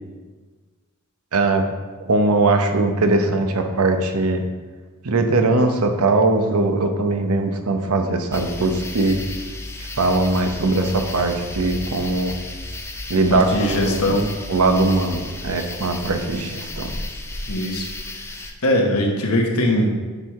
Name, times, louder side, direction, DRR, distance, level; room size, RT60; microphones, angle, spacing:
voice 1, 1.3-1.6 2.0-4.4 5.0-9.2 9.8-12.4 13.1-14.0 14.5-16.9, right 2 dB, 85° right, 5 dB, 0.8 m, -20 dB
sound 1, 8.3-18.5, left 2 dB, 10° left, 0.4 m, -33 dB
voice 2, 13.3-14.3 17.5-17.9 18.6-20.0, left 1 dB, 85° left, 1 dB, 1.2 m, -21 dB
9.8 x 4.7 x 3.6 m, 1.4 s
head